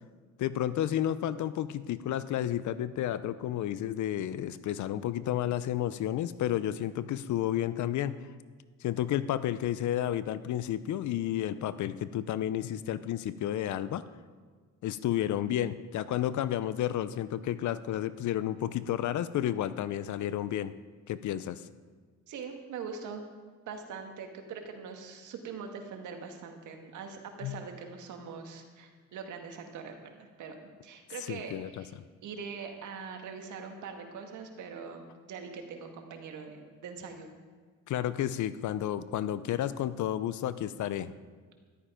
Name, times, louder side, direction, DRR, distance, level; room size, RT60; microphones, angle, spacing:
voice 1, 0.4-8.1 8.8-14.0 14.8-20.7 21.1-21.6 27.4-27.6 31.3-31.8 37.9-41.2, left 11 dB, 75° left, 15 dB, 0.7 m, -31 dB
voice 2, 22.3-23.2 23.7-31.9 32.2-37.3, right 5 dB, 80° right, 4 dB, 1.9 m, -42 dB
13.5 x 11.5 x 5.0 m, 1.5 s
cardioid pair, 90°, 30 cm